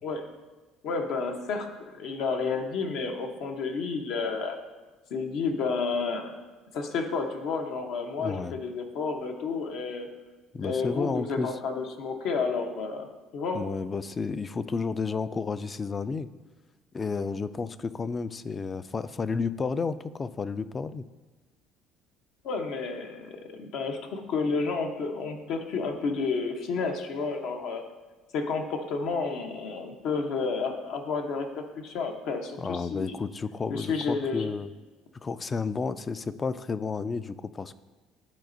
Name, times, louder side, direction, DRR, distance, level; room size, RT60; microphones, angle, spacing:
voice 1, 0.8-4.6 5.1-6.4 6.7-10.1 10.6-13.1 13.3-13.6 22.4-27.8 28.3-33.1 33.7-34.5, left 4 dB, 70° left, 4 dB, 0.9 m, -31 dB
voice 2, 8.2-8.6 10.5-11.5 13.5-16.3 16.9-21.1 32.6-34.7 35.2-37.8, left 4 dB, 30° left, 14 dB, 0.3 m, -31 dB
12.0 x 4.2 x 2.6 m, 1.2 s
supercardioid pair, 90°, 0 cm